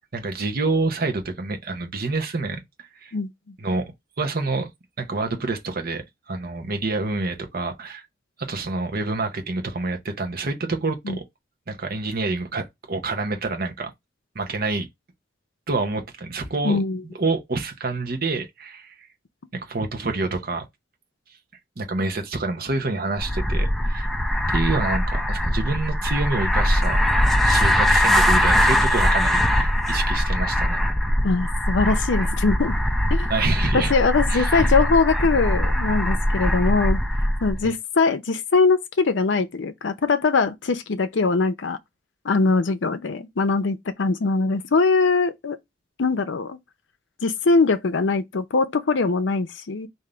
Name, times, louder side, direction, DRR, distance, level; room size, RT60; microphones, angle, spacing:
voice 1, 0.1-2.6 3.0-3.1 3.6-4.7 5.0-8.0 8.4-11.2 11.7-13.9 14.3-14.9 15.7-16.8 17.2-19.1 19.5-20.6 21.8-24.1 24.5-27.0 27.4-30.8 33.3-33.9 34.3-34.7 37.6-37.7, right 3 dB, 55° right, 0.9 m, -27 dB
voice 2, 3.1-3.5 11.1-11.2 16.6-17.0 31.2-32.7 33.1-33.3 33.7-37.0 37.4-41.8 42.2-45.6 46.0-46.6 47.2-49.9, left 4 dB, 70° left, 0.6 m, -22 dB
sound 1, 23.2-37.6, equal, ahead, 0.5 m, -21 dB
3.4 x 2.7 x 3.8 m
head